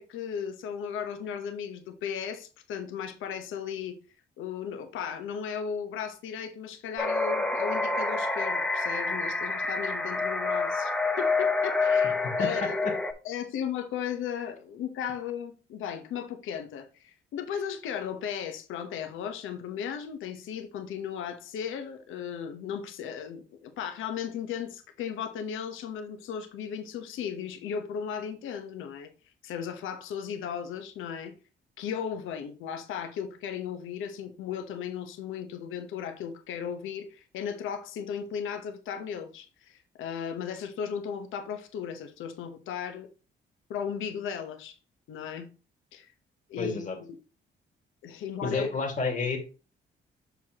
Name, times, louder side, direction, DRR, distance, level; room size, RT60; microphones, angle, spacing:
voice 1, 0.0-4.0 4.4-10.9 11.2-12.9 13.2-29.1 29.4-31.3 31.8-43.1 43.7-44.8 45.1-45.5 45.9-46.1 46.5-47.1 48.0-48.8, left 8 dB, 85° left, 1.0 m, -36 dB
sound 1, 7.0-13.1, left 3 dB, 5° left, 0.9 m, -27 dB
voice 2, 46.6-47.0 48.4-49.4, left 4 dB, 40° left, 2.0 m, -29 dB
7.1 x 6.0 x 2.9 m
cardioid pair, 90°, 20 cm